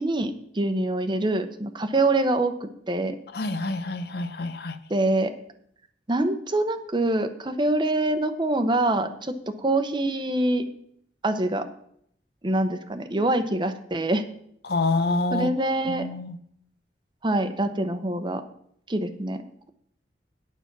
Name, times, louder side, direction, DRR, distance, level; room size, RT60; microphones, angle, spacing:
voice 1, 0.0-3.2 4.9-5.3 6.1-10.7 11.2-11.7 12.4-14.2 15.3-16.1 17.2-18.5 18.9-19.4, right 2 dB, 25° right, 0.8 m, -25 dB
voice 2, 3.3-4.8 14.6-15.5 15.9-16.4, left 2 dB, 60° left, 0.7 m, -27 dB
9.6 x 7.2 x 6.0 m
head